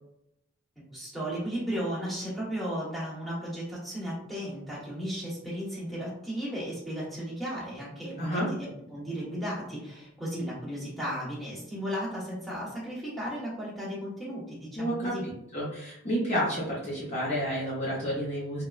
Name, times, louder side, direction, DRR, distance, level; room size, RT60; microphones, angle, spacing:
voice 1, 0.9-15.2, equal, ahead, -9 dB, 1.0 m, -35 dB
voice 2, 8.2-8.5 14.8-15.2 15.5-18.6, equal, 35° left, -7 dB, 0.7 m, -30 dB
3.1 x 2.1 x 2.3 m, 0.79 s
head